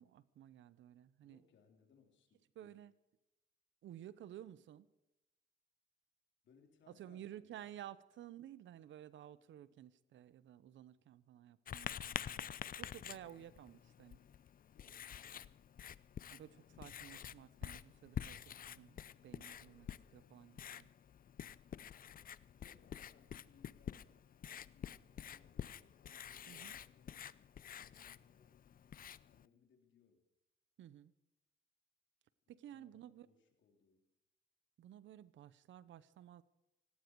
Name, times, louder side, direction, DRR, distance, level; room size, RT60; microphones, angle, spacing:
voice 1, 0.0-1.4 2.6-2.9 3.8-4.9 6.9-14.2 16.3-20.9 26.5-26.7 30.8-31.1 32.5-33.3 34.8-36.4, right 11 dB, 70° right, 17 dB, 0.9 m, -54 dB
voice 2, 1.2-2.8 6.4-7.5 14.7-15.6 22.0-24.2 24.5-27.3 27.7-28.6 29.3-30.3 32.5-34.1, left 6 dB, 70° left, 4 dB, 3.6 m, -70 dB
Writing, 11.7-29.5, left 9 dB, 45° left, 0.6 m, -49 dB
17.5 x 17.5 x 4.7 m, 0.91 s
cardioid pair, 90°, 20 cm